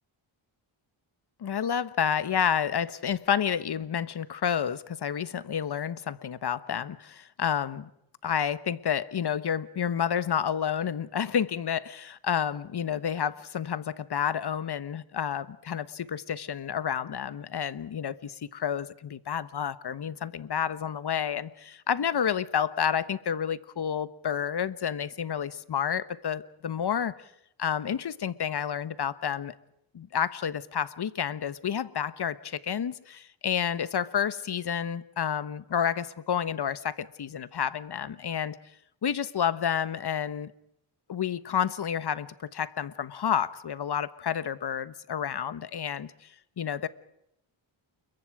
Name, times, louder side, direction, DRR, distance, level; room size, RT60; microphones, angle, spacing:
voice 1, 1.4-7.9 8.2-27.1 27.6-29.5 29.9-38.6 39.0-40.5 41.1-46.1 46.6-46.9, left 8 dB, 55° left, 1.2 m, -30 dB
29.0 x 22.5 x 4.9 m
cardioid pair, 85°, 49 cm